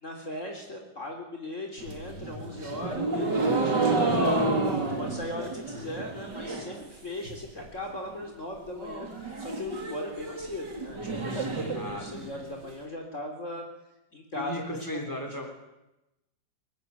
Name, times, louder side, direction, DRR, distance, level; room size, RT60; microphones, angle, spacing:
voice 1, 0.0-4.3 4.7-13.6 14.1-15.2, left 1 dB, 40° left, 2 dB, 4.0 m, -39 dB
sound 1, 1.8-6.8 7.1-7.6 7.9-8.0 8.3-8.4 8.7-12.7, right 2 dB, 65° right, 4.4 m, -30 dB
voice 2, 11.7-12.5 14.3-15.5, left 1 dB, 10° left, 3 dB, 5.5 m, -36 dB
24.0 x 23.5 x 9.4 m, 0.92 s
omnidirectional pair, 2.0 m